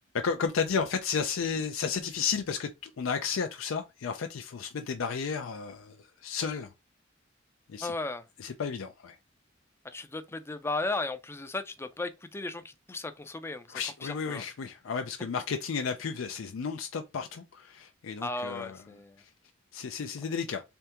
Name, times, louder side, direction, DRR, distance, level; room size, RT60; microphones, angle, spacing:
voice 1, 0.1-6.7 7.7-7.9 8.4-9.2 13.7-18.8 19.7-20.6, left 6 dB, 85° left, 0.4 m, -33 dB
voice 2, 7.8-8.3 9.8-14.4 18.2-19.2, left 2 dB, 15° left, 0.4 m, -36 dB
3.4 x 3.4 x 2.8 m
head